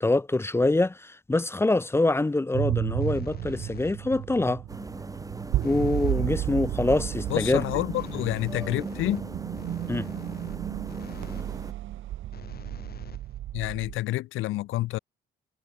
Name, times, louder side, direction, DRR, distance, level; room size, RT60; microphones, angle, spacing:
voice 1, 0.0-4.6 5.6-7.6 9.9-10.1, left 2 dB, 10° left, 0.6 m, -25 dB
sound 1, 2.5-14.0, right 13 dB, 80° right, 1.9 m, -33 dB
sound 2, 3.0-4.2 5.6-6.3 7.9-11.5 12.3-13.8, left 8 dB, 50° left, 3.1 m, -47 dB
sound 3, 4.7-11.7, right 2 dB, 15° right, 4.5 m, -39 dB
voice 2, 7.3-9.3 13.5-15.0, left 17 dB, 85° left, 0.7 m, -28 dB
cardioid pair, 90°, 20 cm